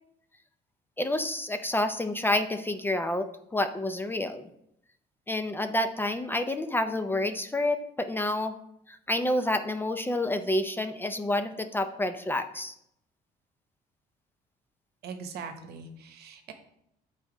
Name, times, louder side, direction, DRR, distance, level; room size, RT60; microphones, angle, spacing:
voice 1, 1.0-4.5 5.3-8.5 8.9-12.7, left 1 dB, 10° left, 8 dB, 0.5 m, -29 dB
voice 2, 15.0-16.5, right 5 dB, 70° right, 6 dB, 1.0 m, -41 dB
7.8 x 4.1 x 4.9 m, 0.76 s
cardioid pair, 110°, 17 cm